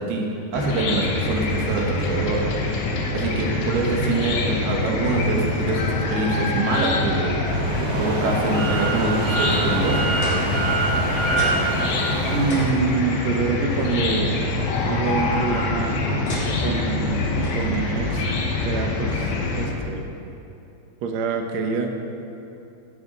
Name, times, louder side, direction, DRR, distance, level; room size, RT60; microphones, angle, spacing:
voice 1, 0.0-2.5 3.1-7.3 7.8-10.0, right 3 dB, 70° right, 0 dB, 3.4 m, -25 dB
Chicken rooster / Cricket, 0.5-19.6, left 2 dB, 90° left, 3.8 m, -25 dB
sound 1, 7.4-12.7, right 3 dB, 55° right, 4.5 m, -26 dB
sound 2, 10.2-11.0 11.4-11.8 12.1-12.2 12.5-14.0 15.1-15.5 16.3-16.9 17.4-17.6 18.5-18.6, left 1 dB, 45° left, 4.8 m, -34 dB
voice 2, 12.3-14.5 14.9-16.0 16.6-18.2 18.6-20.0 21.0-21.9, right 4 dB, 90° right, 4 dB, 1.5 m, -26 dB
17.0 x 13.0 x 4.1 m, 2.7 s
omnidirectional pair, 4.8 m